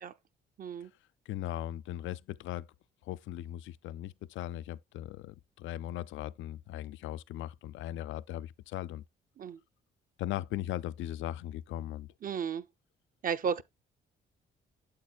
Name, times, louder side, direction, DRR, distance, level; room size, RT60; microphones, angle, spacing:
voice 1, 0.6-0.9 9.4-9.6 12.2-12.7 13.2-13.6, right 7 dB, 45° right, 0.5 m, -33 dB
voice 2, 1.3-2.7 3.0-9.0 10.2-12.1, left 13 dB, 75° left, 0.4 m, -38 dB
8.6 x 7.3 x 2.2 m
cardioid pair, 90°, 20 cm